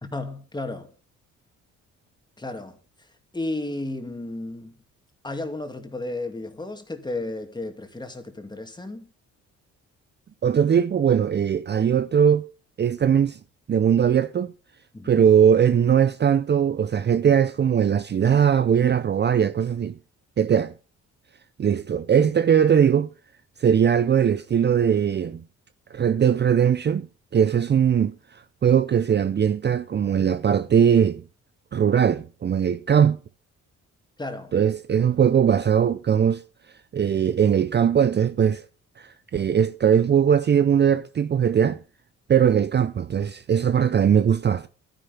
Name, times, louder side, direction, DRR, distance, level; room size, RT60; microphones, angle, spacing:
voice 1, 0.1-0.9 2.4-2.8 3.3-4.8 5.2-9.1 14.9-15.2 34.2-34.5, left 2 dB, 15° left, 2.6 m, -33 dB
voice 2, 10.4-12.5 12.8-13.4 13.7-14.5 15.0-19.9 20.4-20.7 21.6-23.1 23.6-25.4 25.9-27.1 27.3-31.2 31.7-33.2 34.5-36.4 36.9-38.6 39.0-41.8 42.3-44.7, right 8 dB, 35° right, 0.6 m, -20 dB
12.0 x 10.5 x 5.3 m
cardioid pair, 90°, 30 cm